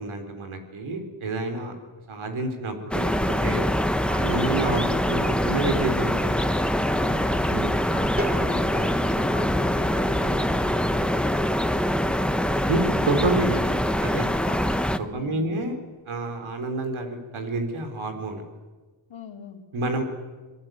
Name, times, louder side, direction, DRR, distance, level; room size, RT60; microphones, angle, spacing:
voice 1, 0.0-1.7 2.1-3.1 3.4-3.7 4.1-6.4 7.5-7.7 12.7-14.3 15.0-18.4 19.7-20.0, right 2 dB, 90° right, 5 dB, 4.3 m, -29 dB
sound 1, 2.9-15.0, equal, ahead, 1.4 m, -24 dB
voice 2, 6.9-7.4 7.9-11.2 14.4-14.8 15.1-15.6 19.1-19.6, left 6 dB, 75° left, 4 dB, 3.1 m, -41 dB
sound 2, 8.2-13.7, equal, 20° right, 3.3 m, -40 dB
26.0 x 22.0 x 9.4 m, 1.3 s
cardioid pair, 60°, 47 cm